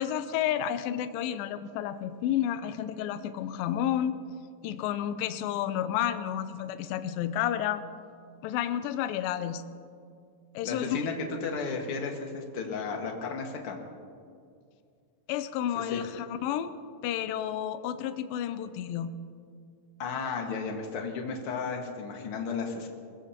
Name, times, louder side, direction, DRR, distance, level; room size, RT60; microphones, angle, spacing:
voice 1, 0.0-4.2 4.6-7.8 8.4-9.6 10.5-11.0 15.3-16.7 17.0-19.1, left 10 dB, 80° left, 11 dB, 2.4 m, -31 dB
voice 2, 10.6-13.8 15.7-16.0 20.0-22.9, left 4 dB, 50° left, 2 dB, 2.0 m, -34 dB
22.0 x 20.5 x 2.9 m, 2.3 s
omnidirectional pair, 4.2 m